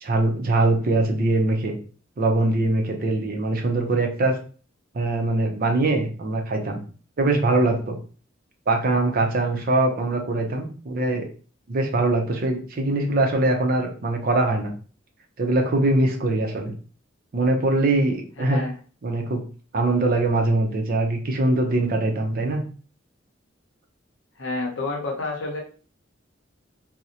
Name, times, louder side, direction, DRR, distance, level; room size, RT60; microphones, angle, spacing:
voice 1, 0.0-1.8 2.2-4.4 4.9-6.8 7.2-8.0 8.7-11.3 11.7-14.7 15.4-16.7 17.3-18.6 19.0-19.4 19.7-22.6, right 2 dB, 50° right, 3 dB, 0.5 m, -22 dB
voice 2, 18.4-18.7 24.4-25.6, left 3 dB, 70° left, 1 dB, 0.6 m, -29 dB
2.5 x 2.0 x 2.7 m, 0.40 s
head